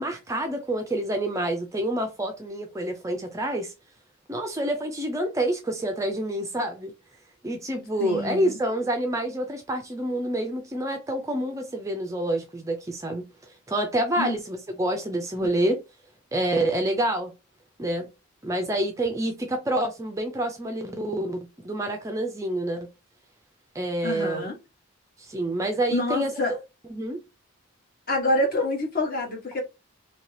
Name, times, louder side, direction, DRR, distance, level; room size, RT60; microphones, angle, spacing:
voice 1, 0.0-3.7 4.3-6.9 7.4-15.8 16.3-17.3 17.8-18.1 18.4-22.9 23.7-24.4 25.2-26.6 26.9-27.2, right 1 dB, 15° right, 0.4 m, -28 dB
voice 2, 8.0-8.6 14.2-14.4 15.4-15.5 24.0-24.6 25.9-26.5 28.1-29.6, left 1 dB, 40° left, 1.1 m, -27 dB
2.8 x 2.7 x 3.2 m
head